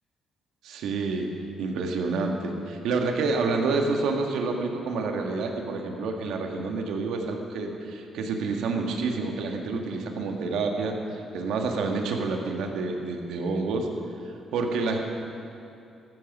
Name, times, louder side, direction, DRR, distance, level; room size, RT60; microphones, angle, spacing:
voice 1, 0.6-1.3 1.6-13.9 14.5-15.0, right 3 dB, 85° right, 3 dB, 1.8 m, -28 dB
15.0 x 14.5 x 5.5 m, 2.7 s
cardioid pair, 90°, 0 cm